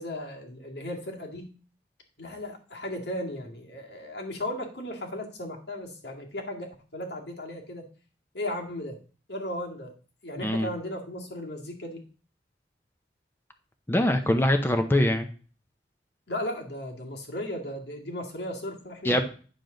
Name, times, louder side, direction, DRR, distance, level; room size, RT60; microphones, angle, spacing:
voice 1, 0.0-1.5 2.2-7.9 8.3-9.0 9.3-9.9 10.2-12.0 16.3-19.2, left 1 dB, 70° left, 1 dB, 2.1 m, -36 dB
voice 2, 10.4-10.7 13.9-15.3 19.0-19.2, left 1 dB, 10° left, 6 dB, 0.7 m, -23 dB
9.3 x 6.8 x 3.9 m, 0.39 s
head